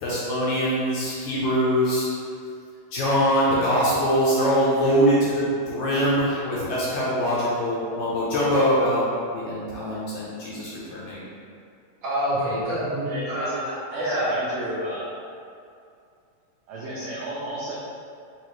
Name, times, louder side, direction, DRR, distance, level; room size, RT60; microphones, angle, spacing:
voice 1, 0.0-2.1 2.9-9.0 9.3-11.3, equal, 75° left, -7 dB, 1.8 m, -23 dB
voice 2, 12.0-14.3, equal, 45° right, -13 dB, 1.8 m, -27 dB
voice 3, 13.0-13.6 13.9-15.1 16.7-17.7, right 1 dB, 85° right, -7 dB, 1.5 m, -32 dB
5.9 x 2.9 x 3.0 m, 2.4 s
omnidirectional pair, 3.8 m